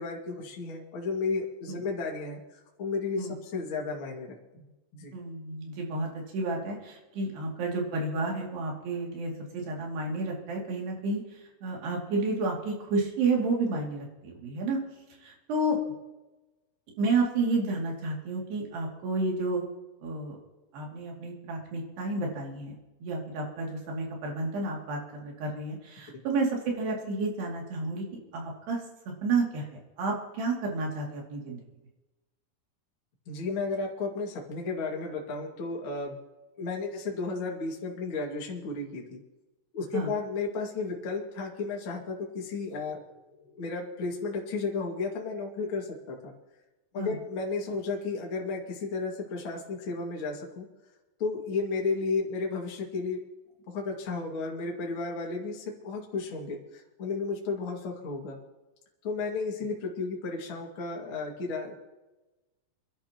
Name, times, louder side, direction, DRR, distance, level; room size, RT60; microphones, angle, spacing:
voice 1, 0.0-4.3 4.5-5.2 33.3-36.2 36.6-39.2 39.7-43.0 43.5-46.3 46.9-50.7 51.2-53.2 53.7-58.4 59.0-61.8, left 4 dB, 40° left, -1 dB, 2.3 m, -33 dB
voice 2, 5.1-11.2 11.6-14.8 15.2-15.8 17.0-19.7 20.0-20.4 20.7-22.8 23.0-28.1 28.3-28.8 29.2-29.7 30.0-31.6 39.9-40.1 47.0-47.2, right 3 dB, 85° right, -1 dB, 4.7 m, -31 dB
28.0 x 11.5 x 3.0 m, 1.1 s
omnidirectional pair, 4.6 m